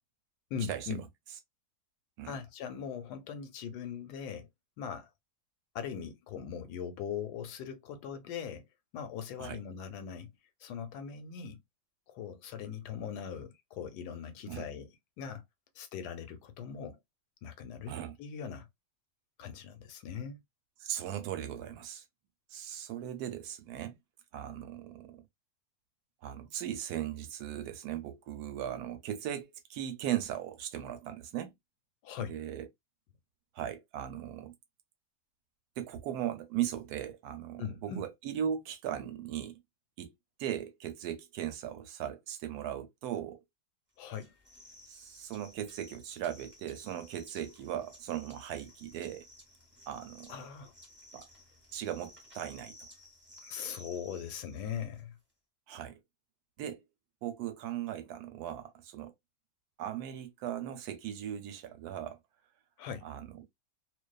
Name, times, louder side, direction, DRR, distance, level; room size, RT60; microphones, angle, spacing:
voice 1, 0.5-1.0 2.2-4.5 4.8-5.1 5.7-8.7 8.9-10.3 10.6-11.6 12.1-14.9 15.2-15.4 15.8-17.0 17.4-18.7 19.4-20.4 32.0-32.3 37.6-38.1 44.0-44.3 50.3-50.7 53.4-55.1 62.8-63.1, left 7 dB, 85° left, 1.2 m, -40 dB
voice 2, 20.8-22.0 22.5-24.0 24.3-25.2 26.2-31.5 32.3-32.7 33.5-34.5 35.8-39.6 40.0-40.1 40.4-43.4 44.9-49.2 49.9-50.3 51.1-51.2 51.7-52.8 55.7-56.0 56.6-56.8 57.2-59.1 59.8-62.2 63.0-63.5, right 10 dB, 75° right, 1.1 m, -38 dB
sound 1, 44.1-55.0, left 1 dB, 10° right, 0.7 m, -56 dB
2.6 x 2.3 x 2.2 m
omnidirectional pair, 1.7 m